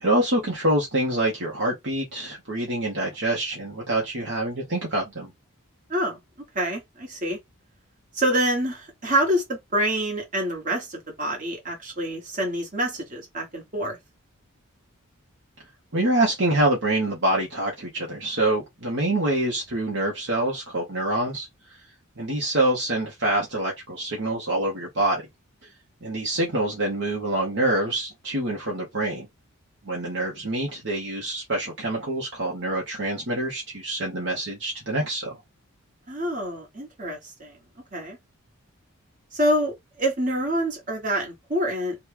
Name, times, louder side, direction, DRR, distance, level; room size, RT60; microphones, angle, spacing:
voice 1, 0.0-5.3 15.9-21.5 22.2-25.2 26.0-29.3 29.8-35.4, right 1 dB, 55° right, 1.0 m, -26 dB
voice 2, 6.5-7.4 8.1-14.0 36.1-37.6 37.9-38.2 39.3-42.0, right 1 dB, 35° right, 1.3 m, -26 dB
3.0 x 2.3 x 3.3 m
head